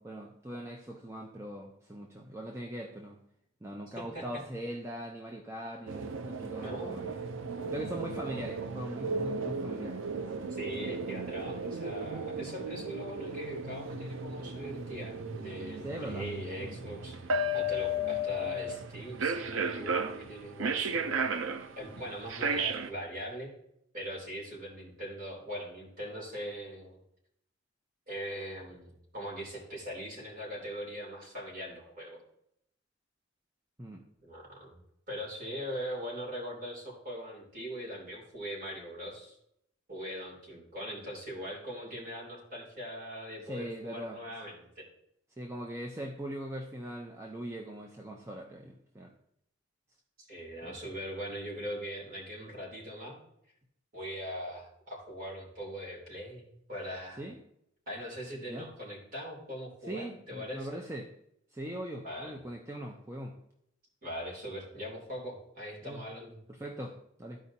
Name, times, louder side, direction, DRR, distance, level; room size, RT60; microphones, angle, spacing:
voice 1, 0.0-3.2 3.6-7.2 7.7-10.5 12.8-12.9 15.8-16.3 16.6-16.8 33.8-34.0 43.4-44.2 45.4-49.1 50.6-50.7 57.2-57.4 58.5-58.7 59.9-61.1 61.5-63.4 65.8-66.0 66.5-67.4, right 1 dB, 15° right, 0 dB, 0.6 m, -41 dB
sound 1, 5.9-22.9, right 2 dB, 85° right, 0.6 m, -35 dB
voice 2, 6.6-7.0 10.5-17.2 17.5-21.3 21.8-23.5 23.9-27.0 28.1-32.2 34.2-34.8 35.1-39.4 39.9-44.9 50.2-53.2 53.9-57.2 57.9-60.8 62.0-62.3 64.0-66.4, equal, 45° right, -2 dB, 3.3 m, -41 dB
13.5 x 4.9 x 2.8 m, 0.76 s
head